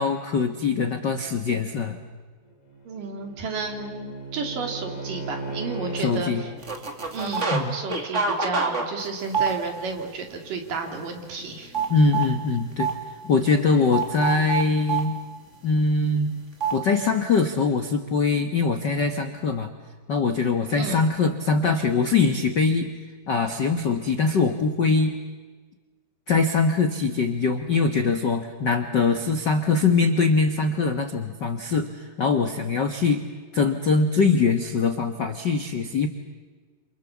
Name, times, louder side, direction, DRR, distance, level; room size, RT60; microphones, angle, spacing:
voice 1, 0.0-2.0 6.0-6.4 7.5-7.8 11.9-12.9 13.2-15.2 15.6-16.3 16.7-19.7 20.1-22.9 23.3-25.2 26.3-33.2 33.5-36.1, left 4 dB, 75° left, 7 dB, 1.0 m, -22 dB
Bowed string instrument, 2.5-6.5, right 2 dB, 45° left, 4.4 m, -36 dB
voice 2, 2.8-6.5 7.1-11.7 20.8-21.0, right 4 dB, 65° right, 3 dB, 4.5 m, -32 dB
sound 1, 6.6-7.6 7.9-10.0 10.5-10.7 10.9-12.3 12.8-12.9 13.9-15.0 16.6-16.8, right 5 dB, 25° right, 2.4 m, -26 dB
29.0 x 28.0 x 7.3 m, 1.4 s
omnidirectional pair, 4.1 m